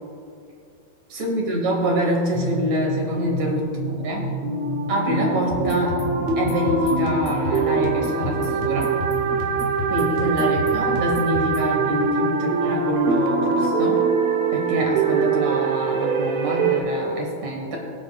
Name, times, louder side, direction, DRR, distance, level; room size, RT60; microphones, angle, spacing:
voice 1, 1.1-4.3 4.9-5.9 6.4-8.9 9.9-14.0 14.5-17.8, equal, 60° right, 0 dB, 2.3 m, -25 dB
sound 1, 2.3-16.8, right 5 dB, 85° right, 1.5 m, -23 dB
sound 2, 5.5-11.7, left 1 dB, 65° left, 3.3 m, -33 dB
22.5 x 7.6 x 2.3 m, 2.5 s
omnidirectional pair, 4.3 m